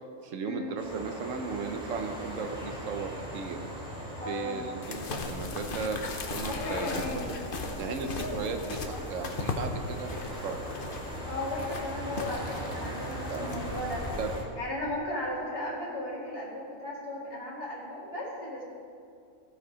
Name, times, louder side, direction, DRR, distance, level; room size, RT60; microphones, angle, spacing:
voice 1, 0.2-3.6 4.2-7.3 7.8-10.6 13.3-13.7 14.2-14.3, right 5 dB, 75° right, 6 dB, 1.2 m, -36 dB
sound 1, 0.8-14.4, equal, 5° right, 2.5 m, -40 dB
sound 2, 4.8-14.4, left 4 dB, 45° left, 1.0 m, -38 dB
voice 2, 6.4-7.3 11.2-14.0 14.6-18.6, left 1 dB, 25° left, -6 dB, 2.4 m, -36 dB
15.0 x 7.1 x 5.0 m, 2.3 s
omnidirectional pair, 1.4 m